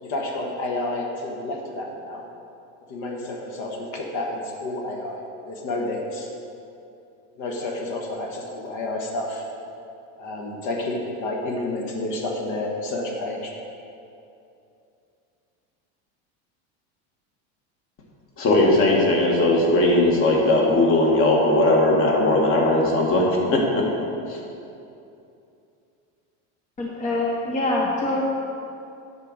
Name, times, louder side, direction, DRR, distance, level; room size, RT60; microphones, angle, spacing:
voice 1, 0.0-2.2 2.9-6.3 7.4-9.4 10.2-13.5, left 2 dB, 55° left, 0 dB, 1.3 m, -30 dB
voice 2, 18.4-23.9 24.3-24.4, left 2 dB, 40° left, -1 dB, 1.7 m, -19 dB
voice 3, 26.8-28.2, left 2 dB, 20° left, -2 dB, 0.7 m, -24 dB
9.5 x 4.1 x 6.3 m, 2.7 s
supercardioid pair, 135°, 36 cm